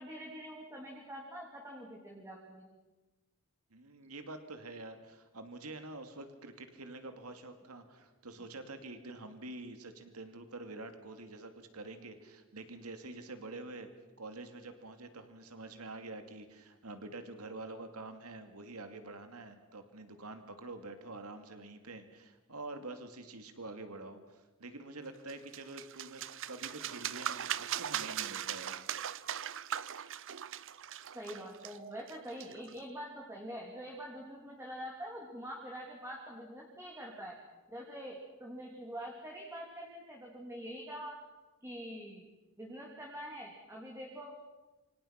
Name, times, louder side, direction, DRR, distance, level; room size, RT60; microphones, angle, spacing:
voice 1, 0.0-2.7 31.1-37.4 37.7-41.2 41.6-42.3 42.6-44.4, equal, 10° right, -1 dB, 3.3 m, -45 dB
voice 2, 3.7-13.9 14.2-26.2 26.5-28.8, right 2 dB, 85° right, 7 dB, 2.5 m, -47 dB
sound 1, 25.3-32.8, right 10 dB, 60° right, 0.8 m, -39 dB
28.0 x 26.0 x 5.9 m, 1.1 s
head